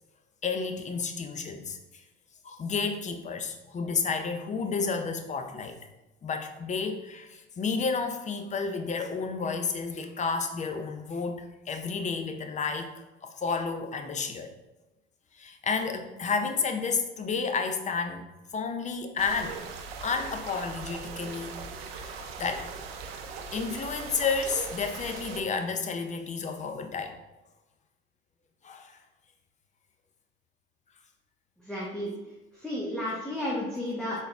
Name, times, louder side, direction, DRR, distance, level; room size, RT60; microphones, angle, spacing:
voice 1, 0.4-2.0 2.4-5.8 6.2-12.9 13.2-14.5 15.3-18.2 18.5-19.6 20.0-21.6 21.9-22.7 23.5-27.2 28.6-29.0, left 5 dB, 25° left, 6 dB, 0.6 m, -31 dB
sound 1, 19.2-25.4, right 5 dB, 75° right, 0.6 m, -40 dB
voice 2, 31.7-32.1 32.6-34.2, left 1 dB, 5° left, -6 dB, 1.1 m, -32 dB
4.0 x 3.9 x 3.4 m, 1.0 s
hypercardioid pair, 75°, 30 cm